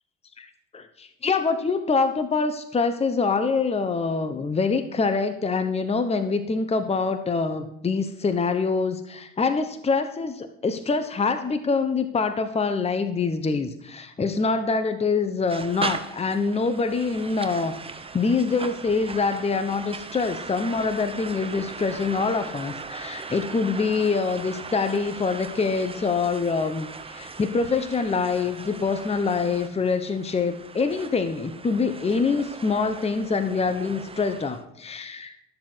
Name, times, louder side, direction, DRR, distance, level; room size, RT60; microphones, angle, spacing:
voice 1, 0.7-35.4, left 4 dB, 20° left, 9 dB, 1.1 m, -25 dB
sound 1, 15.5-34.6, right 4 dB, 20° right, 1.1 m, -39 dB
13.0 x 7.4 x 4.6 m, 0.83 s
supercardioid pair, 85°, 29 cm